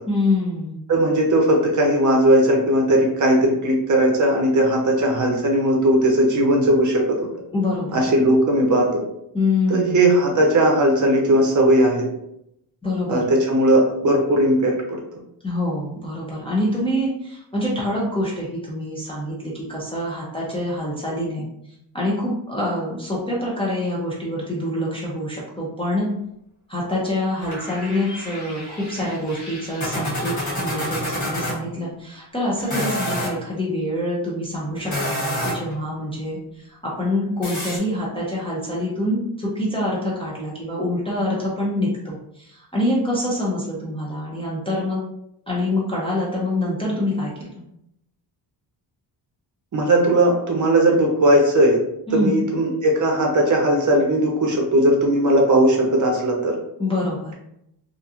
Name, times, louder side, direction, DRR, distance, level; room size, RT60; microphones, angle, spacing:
voice 1, 0.1-0.8 7.5-8.0 9.3-10.0 12.8-13.2 15.4-21.5 21.9-26.1 26.7-45.0 45.5-47.5 52.1-52.4 56.8-57.3, left 1 dB, 15° left, -6 dB, 0.4 m, -25 dB
voice 2, 0.9-7.3 7.9-9.0 9.7-12.1 13.1-15.0 49.7-51.8 52.1-56.6, right 1 dB, 45° right, 0 dB, 0.6 m, -18 dB
sound 1, 27.4-31.6 32.6-33.3 34.8-35.7 37.4-37.8, equal, 45° left, 1.0 m, -28 dB
2.8 x 2.4 x 2.3 m, 0.78 s
wide cardioid pair, 170°, 43 cm